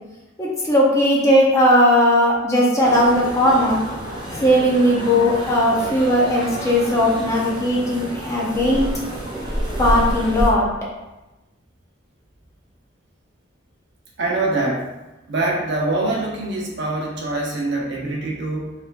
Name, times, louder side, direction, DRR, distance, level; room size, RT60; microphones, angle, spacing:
voice 1, 0.4-3.8 4.4-8.9 9.8-10.7, equal, 15° left, -5 dB, 0.8 m, -17 dB
sound 1, 2.8-10.5, equal, 25° right, 0.8 m, -29 dB
voice 2, 14.2-14.9 15.3-18.7, right 2 dB, 60° right, -2 dB, 0.9 m, -24 dB
4.6 x 3.5 x 2.5 m, 1.0 s
head